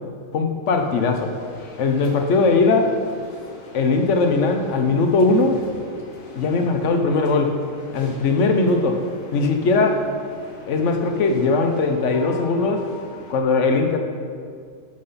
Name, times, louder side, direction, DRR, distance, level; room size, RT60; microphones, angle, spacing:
voice 1, 0.3-1.3 1.8-2.9 3.7-5.6 6.4-7.6 7.9-9.0 9.3-10.0 10.7-12.9 13.3-14.0, left 3 dB, 60° left, 5 dB, 1.2 m, -19 dB
sound 1, 0.7-13.4, left 1 dB, 75° left, 1.7 m, -42 dB
11.5 x 6.1 x 5.7 m, 2.2 s
omnidirectional pair, 1.4 m